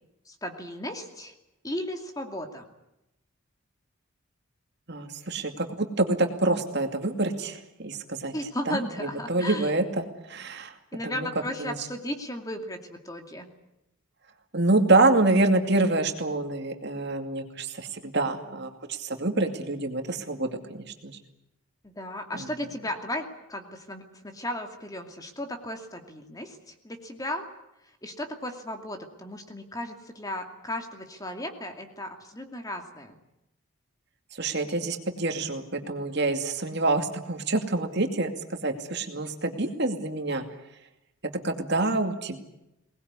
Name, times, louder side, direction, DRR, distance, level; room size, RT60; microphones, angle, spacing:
voice 1, 0.3-1.3 1.6-2.6 8.3-9.7 10.9-13.5 21.8-27.5 28.0-33.2, left 1 dB, 15° left, 5 dB, 2.5 m, -35 dB
voice 2, 4.9-8.3 8.7-8.8 9.3-10.7 11.0-11.3 11.6-11.8 14.5-20.5 21.0-21.2 22.3-22.4 34.3-40.4 41.4-42.5, right 2 dB, 50° right, 5 dB, 2.4 m, -26 dB
23.0 x 19.5 x 9.7 m, 0.89 s
head